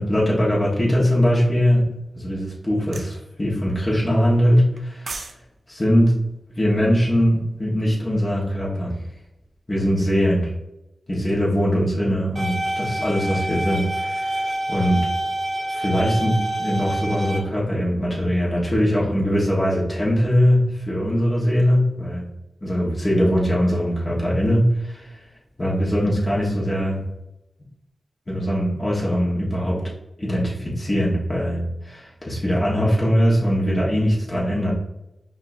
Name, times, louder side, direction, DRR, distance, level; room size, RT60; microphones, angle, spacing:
voice 1, 0.0-1.9 2.2-5.2 5.7-6.2 6.6-9.0 9.7-10.5 11.1-15.1 15.7-22.2 22.6-25.2 25.6-27.0 28.3-29.8 30.2-34.7, equal, 25° left, -5 dB, 1.3 m, -21 dB
sound 1, 2.9-3.1 4.8-5.4 5.7-5.9, right 3 dB, 60° right, 0.4 m, -34 dB
sound 2, 12.4-17.4, right 1 dB, 35° right, 1.1 m, -27 dB
5.4 x 2.6 x 2.6 m, 0.91 s
wide cardioid pair, 75°, 0 cm